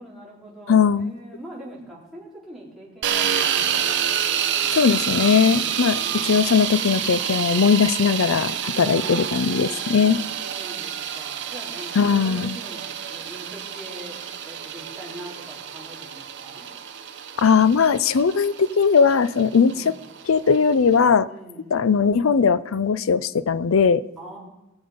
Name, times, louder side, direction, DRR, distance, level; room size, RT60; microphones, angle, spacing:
voice 1, 0.0-3.8 5.5-6.5 8.6-16.7 19.3-20.0 21.2-22.0 24.2-24.4, right 1 dB, ahead, -7 dB, 4.2 m, -42 dB
voice 2, 0.7-1.1 4.7-6.0 6.2-10.2 12.0-12.6 17.4-19.7 20.3-21.3 21.7-24.0, left 6 dB, 75° left, 17 dB, 0.5 m, -19 dB
sound 1, 3.0-21.0, right 9 dB, 60° right, 0.9 m, -28 dB
21.0 x 7.2 x 5.2 m, 0.98 s
head